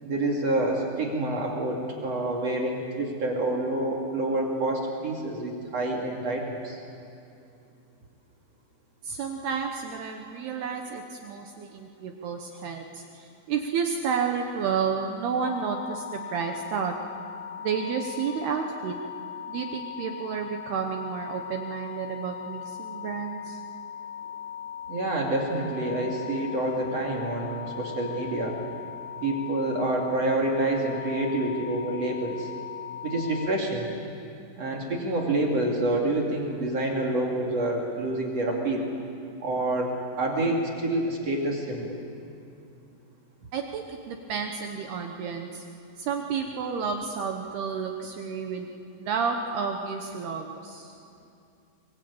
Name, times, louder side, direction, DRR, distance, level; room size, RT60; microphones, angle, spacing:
voice 1, 0.0-6.8 24.9-28.6 29.2-32.5 33.0-33.9 34.6-38.9 39.4-42.0, right 2 dB, 40° right, -1 dB, 2.7 m, -27 dB
voice 2, 9.0-16.9 17.6-19.0 19.5-23.6 43.5-45.6 46.0-48.7 49.0-51.0, right 6 dB, 70° right, 3 dB, 2.6 m, -31 dB
sound 1, 15.4-33.6, left 9 dB, 85° left, 3.4 m, -39 dB
24.5 x 23.0 x 8.7 m, 2.5 s
omnidirectional pair, 5.7 m